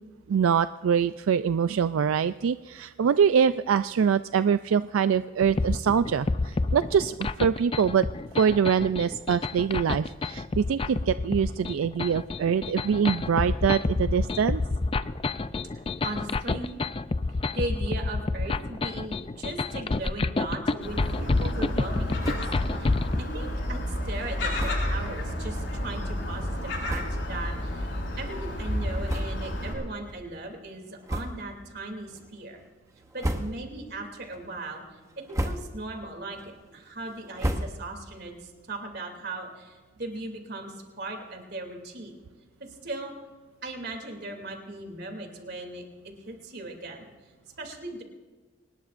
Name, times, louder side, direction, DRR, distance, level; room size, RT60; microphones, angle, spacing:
voice 1, 0.3-8.1 8.4-14.6, right 7 dB, 85° right, 12 dB, 0.4 m, -24 dB
sound 1, 5.4-23.2, left 3 dB, 25° left, 0.4 m, -29 dB
voice 2, 15.7-16.8 17.3-27.9 28.2-32.6 33.1-42.1 42.6-43.1 43.6-47.1 47.6-48.0, right 2 dB, 50° right, 3 dB, 2.8 m, -38 dB
Gull seagull, 20.8-29.7, left 1 dB, 65° left, 5.8 m, -31 dB
sound 2, 22.2-22.7 23.0-23.1 23.4-23.5 24.5-25.0 25.7-25.8 26.5-26.6 26.8-27.4 27.9-28.1 29.0-29.7 30.0-30.2 31.0-31.6 32.1-32.5 33.0-33.9 34.3-34.7 35.1-35.9 36.3-38.1, equal, 15° right, 0.8 m, -34 dB
24.5 x 20.0 x 2.6 m, 1.4 s
head